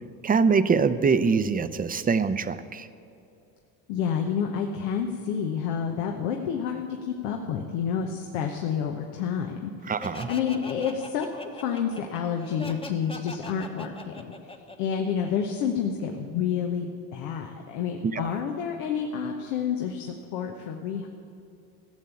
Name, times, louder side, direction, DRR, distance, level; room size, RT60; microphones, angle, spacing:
voice 1, 0.2-2.9 9.9-10.3 18.0-18.3, right 5 dB, 20° right, 12 dB, 0.6 m, -23 dB
voice 2, 3.9-9.9 10.3-21.1, left 7 dB, 85° left, 3 dB, 1.1 m, -29 dB
Laughter, 10.0-15.7, left 2 dB, 15° left, 1.0 m, -41 dB
15.0 x 7.3 x 8.3 m, 2.7 s
supercardioid pair, 90°, 42 cm